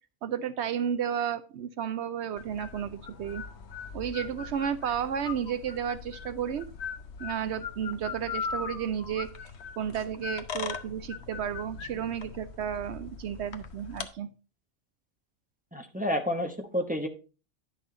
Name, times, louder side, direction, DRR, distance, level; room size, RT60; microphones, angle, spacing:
voice 1, 0.2-3.4 3.9-6.7 7.2-9.3 9.8-14.3, right 8 dB, 70° right, 12 dB, 0.8 m, -32 dB
sound 1, 2.4-14.1, left 6 dB, 65° left, 1.1 m, -40 dB
voice 2, 15.7-17.1, left 1 dB, 10° right, 4 dB, 1.0 m, -30 dB
10.5 x 6.2 x 3.8 m, 0.33 s
omnidirectional pair, 1.2 m